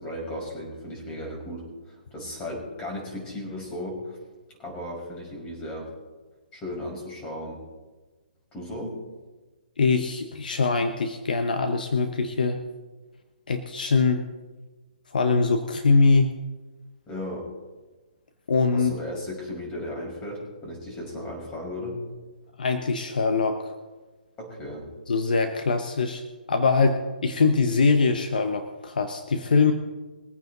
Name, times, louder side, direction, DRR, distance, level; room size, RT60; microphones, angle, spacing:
voice 1, 0.0-4.2 4.5-5.9 6.5-7.6 8.5-9.0 17.1-17.5 18.7-22.0 24.4-24.9, left 1 dB, 20° left, -1 dB, 5.6 m, -35 dB
voice 2, 9.8-12.6 13.5-14.2 15.1-16.3 18.5-18.9 22.6-23.7 25.1-26.2 26.5-29.7, left 4 dB, 65° left, 7 dB, 1.3 m, -22 dB
22.5 x 9.2 x 4.0 m, 1.3 s
figure-of-eight pair, 135°, 5 cm